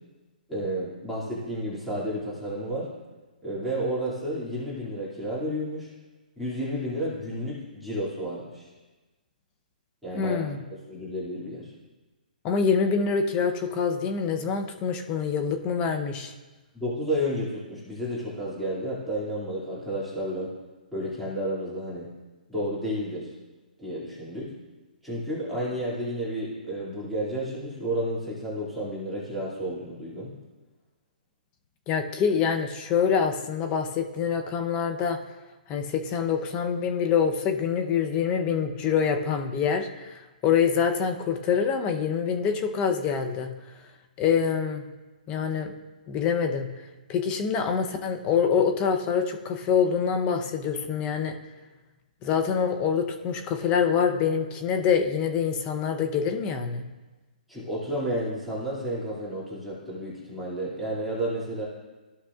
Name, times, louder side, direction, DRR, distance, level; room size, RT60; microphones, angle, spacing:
voice 1, 0.5-2.9 3.4-5.9 6.4-8.7 10.0-10.6 10.9-11.7 16.7-20.5 20.9-22.1 22.5-23.3 23.8-24.5 25.0-30.3 57.5-61.6, equal, ahead, -9 dB, 2.4 m, -31 dB
voice 2, 10.1-10.6 12.4-16.3 31.9-35.2 35.7-43.5 44.2-44.8 45.3-45.7 46.1-46.7 47.1-51.4 52.2-56.8, left 6 dB, 20° left, 5 dB, 0.7 m, -25 dB
14.5 x 5.6 x 2.4 m, 1.2 s
hypercardioid pair, 145°, 5 cm